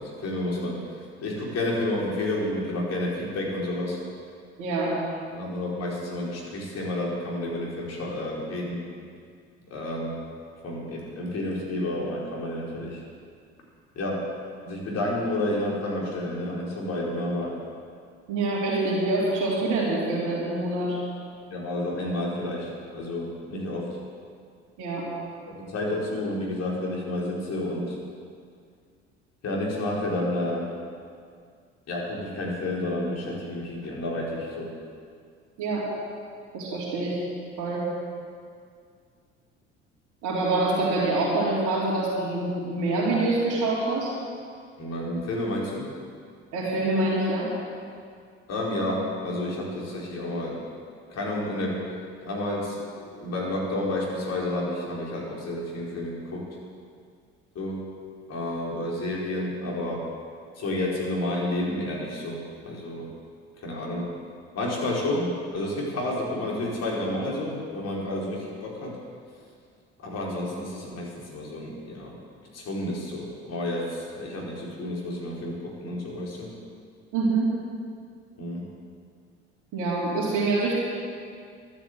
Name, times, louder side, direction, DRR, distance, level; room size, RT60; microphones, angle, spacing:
voice 1, 0.0-4.0 5.3-8.8 9.7-10.3 10.6-13.0 13.9-14.3 14.6-17.6 21.5-24.0 25.6-28.0 29.4-30.7 31.9-34.8 44.8-45.9 48.5-50.6 51.1-51.9 52.2-56.6 57.5-57.9 58.3-60.1 60.5-63.1 63.6-64.2 64.5-69.0 70.0-72.1 72.5-76.5 78.4-78.6, left 1 dB, 50° left, -4 dB, 4.8 m, -30 dB
voice 2, 4.6-4.9 18.3-21.0 24.8-25.1 35.6-35.8 36.5-37.2 37.6-37.9 40.2-44.1 46.5-47.5 77.1-77.5 79.7-80.7, right 2 dB, 60° right, -6 dB, 3.8 m, -25 dB
12.5 x 9.9 x 8.2 m, 2.2 s
hypercardioid pair, 55°, 33 cm